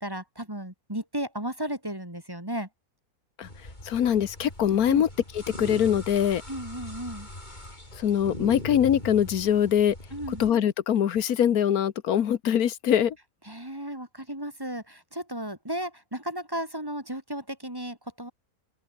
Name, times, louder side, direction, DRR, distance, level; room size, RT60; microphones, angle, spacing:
voice 1, 0.0-2.7 4.9-5.0 6.5-7.3 10.1-10.4 13.5-18.3, right 1 dB, 15° right, 2.9 m, -34 dB
sound 1, 3.4-10.5, left 1 dB, 30° left, 6.6 m, -41 dB
voice 2, 3.9-5.1 5.6-6.4 8.0-10.0 10.4-13.2, left 9 dB, 70° left, 1.5 m, -23 dB
open air
omnidirectional pair, 1.6 m